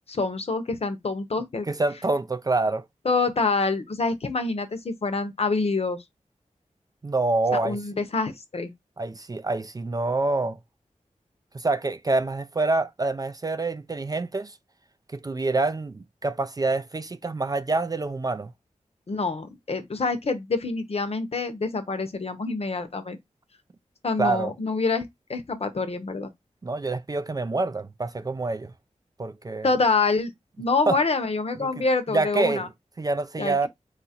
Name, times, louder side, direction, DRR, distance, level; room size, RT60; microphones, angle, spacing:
voice 1, 0.1-1.7 3.0-6.0 7.6-8.7 19.1-23.2 24.0-26.3 29.6-30.3 30.6-32.7 33.4-33.7, left 3 dB, 50° left, 0.8 m, -26 dB
voice 2, 1.7-2.8 7.0-7.8 9.0-10.6 11.5-14.6 15.1-18.5 24.2-24.5 26.6-28.7 29.2-29.7 30.9-31.0 31.6-32.7 33.0-33.7, right 3 dB, 30° right, 0.3 m, -26 dB
3.9 x 2.4 x 4.1 m
wide cardioid pair, 110°, 13 cm